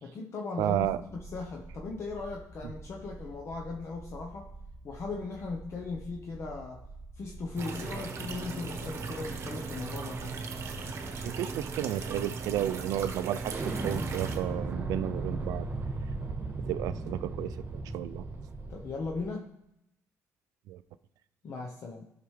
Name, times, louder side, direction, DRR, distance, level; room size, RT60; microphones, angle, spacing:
voice 1, 0.0-4.5 4.8-6.8 7.2-10.4 18.7-19.5 21.4-22.0, left 4 dB, 50° left, 1 dB, 0.8 m, -38 dB
sound 1, 0.6-19.3, right 3 dB, 5° left, 2.4 m, -48 dB
voice 2, 0.6-1.0 11.2-15.7 16.7-18.3 20.7-20.8, right 12 dB, 90° right, 14 dB, 0.3 m, -32 dB
sound 2, 7.6-14.4, right 4 dB, 50° right, 1.0 m, -38 dB
Explosion, 13.4-19.0, right 3 dB, 30° right, 1.4 m, -36 dB
12.0 x 5.8 x 3.2 m, 0.82 s
cardioid pair, 110°, 6 cm